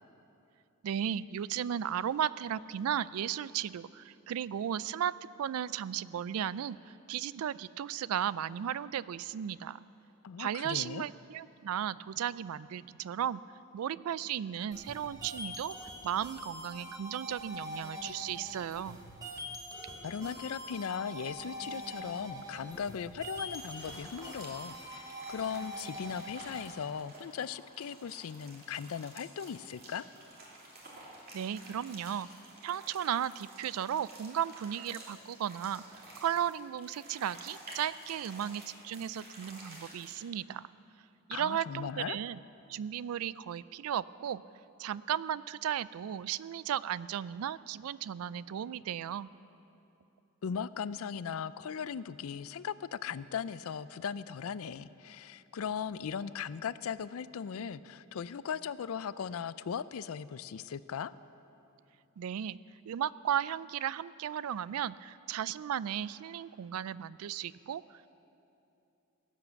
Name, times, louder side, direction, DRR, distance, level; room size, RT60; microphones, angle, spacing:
voice 1, 0.8-5.1 5.4-9.8 10.4-13.4 13.7-15.8 16.0-19.0 31.3-32.3 32.6-35.8 36.2-40.7 41.3-42.4 42.7-44.4 44.8-49.3 62.2-62.6 62.9-68.1, right 9 dB, 80° right, 18 dB, 0.3 m, -35 dB
voice 2, 10.2-11.0 20.0-30.1 41.3-42.2 50.4-61.1, left 7 dB, 75° left, 16 dB, 0.4 m, -38 dB
sound 1, 14.7-26.7, equal, 15° right, 1.3 m, -44 dB
sound 2, 23.3-40.3, right 1 dB, 45° right, 2.8 m, -51 dB
18.0 x 8.4 x 7.0 m, 2.8 s
head